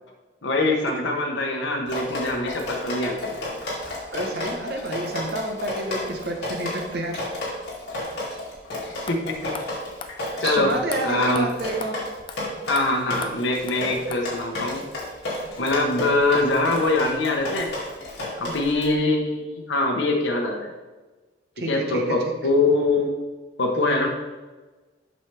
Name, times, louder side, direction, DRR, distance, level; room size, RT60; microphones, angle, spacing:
voice 1, 0.4-3.3 8.8-9.5 10.4-10.7 11.0-11.5 12.7-14.9 15.6-17.7 18.4-20.7 21.7-23.1 23.6-24.1, left 2 dB, 75° left, 0 dB, 0.9 m, -23 dB
Drip, 1.9-18.9, left 1 dB, 55° left, 2.2 m, -32 dB
voice 2, 4.1-7.3 10.4-12.0 21.6-22.2, right 2 dB, 55° right, 3 dB, 1.0 m, -29 dB
sound 1, 8.6-8.7 9.1-9.2 9.5-9.7 10.0-10.1 10.5-10.6 10.9-11.0 11.3-11.5 11.8-11.9 12.3-12.4 12.8-12.9 13.2-13.3 13.7-13.8 14.1-14.2, left 5 dB, 25° left, 0.3 m, -36 dB
7.6 x 5.6 x 3.3 m, 1.2 s
head